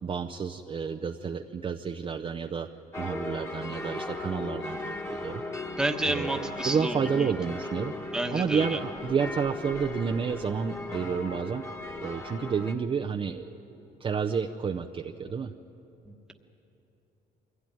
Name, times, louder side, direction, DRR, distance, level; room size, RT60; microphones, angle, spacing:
voice 1, 0.0-2.7 3.0-5.4 6.1-7.9 8.3-11.6 12.0-13.6 14.0-15.5, right 6 dB, 30° right, 5 dB, 0.6 m, -30 dB
sound 1, 2.9-12.7, left 2 dB, 15° left, 1.6 m, -37 dB
voice 2, 5.8-7.3 8.1-8.8 16.0-16.3, right 1 dB, 5° right, 5 dB, 1.3 m, -30 dB
22.5 x 16.0 x 9.2 m, 3.0 s
cardioid pair, 110°, 17 cm